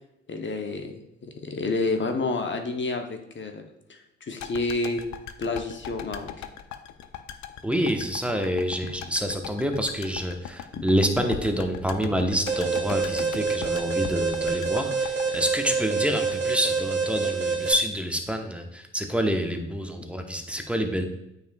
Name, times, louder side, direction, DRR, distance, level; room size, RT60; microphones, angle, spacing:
voice 1, 0.3-0.9 1.2-3.6 3.9-5.0 5.4-6.3 9.0-9.1 10.7-10.9, left 3 dB, 35° left, 5 dB, 0.9 m, -29 dB
sound 1, 4.4-16.6 16.9-17.0, left 9 dB, 60° left, 0.6 m, -39 dB
voice 2, 7.6-21.0, equal, 5° right, 4 dB, 1.0 m, -27 dB
Alarm, 12.5-17.7, right 5 dB, 35° right, 1.5 m, -27 dB
9.1 x 5.0 x 2.3 m, 0.85 s
hypercardioid pair, 40°, 33 cm